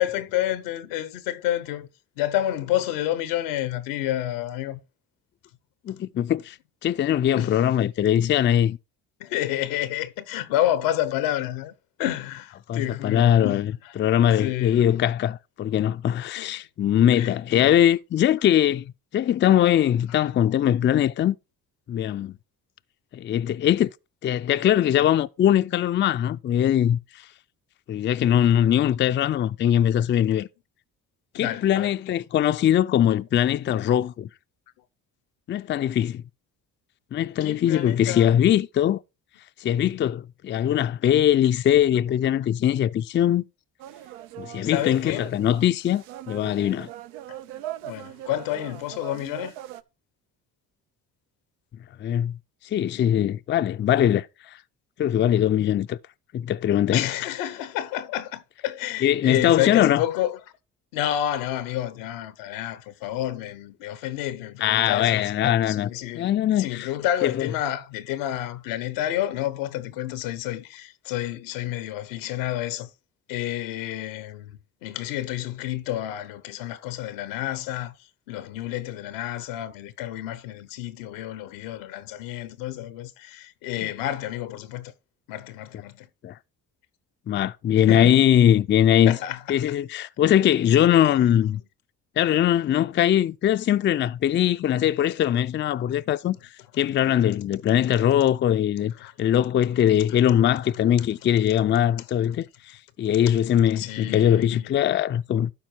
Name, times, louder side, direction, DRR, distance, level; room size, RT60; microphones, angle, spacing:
voice 1, 0.0-1.9 2.2-4.8 7.3-7.6 9.2-11.7 12.0-13.9 14.3-14.9 16.4-16.5 17.1-17.8 20.2-20.3 31.3-31.9 37.4-38.3 44.6-45.3 47.3-47.4 47.8-49.5 56.9-60.4 60.9-72.9 73.3-77.9 78.3-84.9 85.3-86.1 87.8-88.2 89.1-89.6 99.0-99.3 103.7-104.8, left 13 dB, 90° left, 0.9 m, -29 dB
voice 2, 5.9-6.6 6.8-8.8 12.7-13.7 14.0-21.4 21.9-22.3 23.1-23.9 24.2-27.0 27.9-30.5 31.3-34.3 35.5-36.2 37.1-39.0 39.6-43.4 44.4-46.9 52.0-52.4 52.7-54.3 55.0-56.0 56.3-57.1 59.0-60.0 64.6-65.9 66.2-66.9 67.2-67.5 86.2-86.3 87.3-89.2 89.5-91.6 92.2-96.4 96.8-98.9 99.2-105.5, left 10 dB, 30° left, 0.4 m, -21 dB
sound 1, 43.8-49.8, right 13 dB, 90° right, 0.6 m, -40 dB
12.0 x 4.6 x 4.4 m
supercardioid pair, 65°, 41 cm